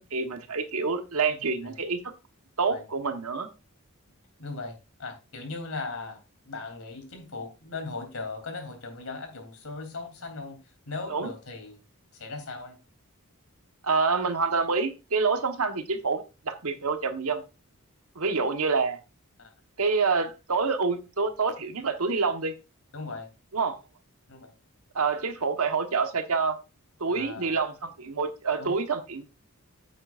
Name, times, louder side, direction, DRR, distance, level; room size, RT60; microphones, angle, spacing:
voice 1, 0.1-2.0 2.6-3.5 11.1-11.3 13.8-17.4 18.1-19.0 19.8-22.5 23.5-23.7 24.9-26.6 27.0-29.2, right 4 dB, 90° right, 7 dB, 1.2 m, -27 dB
voice 2, 1.4-1.8 2.7-2.8 4.4-11.8 12.1-12.8 19.4-19.5 22.9-23.3 24.3-24.5 27.1-27.6 28.6-28.8, left 3 dB, 70° left, 4 dB, 3.1 m, -38 dB
9.2 x 8.8 x 2.5 m, 0.29 s
head